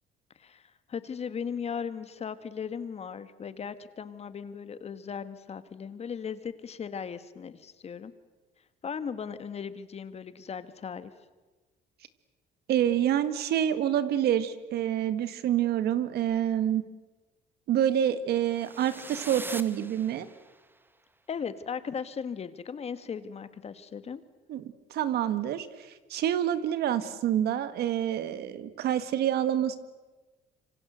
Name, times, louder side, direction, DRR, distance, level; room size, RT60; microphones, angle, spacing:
voice 1, 0.4-8.1 8.8-11.1 21.3-24.2, left 6 dB, 40° left, 12 dB, 1.7 m, -37 dB
voice 2, 12.7-16.8 17.7-20.3 24.5-24.6 24.9-25.7 26.1-29.8, right 10 dB, 70° right, 12 dB, 1.8 m, -27 dB
sound 1, 18.5-20.7, right 2 dB, 10° right, 1.3 m, -42 dB
26.5 x 25.0 x 8.0 m, 1.2 s
cardioid pair, 110°, 17 cm